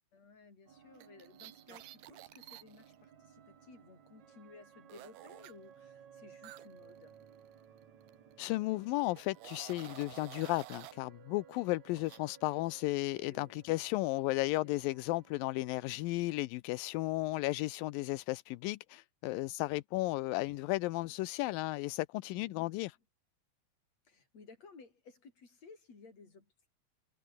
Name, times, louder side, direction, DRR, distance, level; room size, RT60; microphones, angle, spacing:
voice 1, 0.1-7.2 13.2-13.6 14.6-14.7 22.3-22.8 24.0-26.7, left 4 dB, 40° left, 6.4 m, -57 dB
sound 1, 0.7-16.1, right 8 dB, 50° right, 3.3 m, -59 dB
sound 2, 1.0-3.0 4.9-5.5 6.4-8.3 9.2-11.0 11.9-12.2, right 15 dB, 80° right, 2.9 m, -51 dB
voice 2, 8.4-22.9, left 19 dB, 80° left, 2.2 m, -34 dB
omnidirectional pair, 4.5 m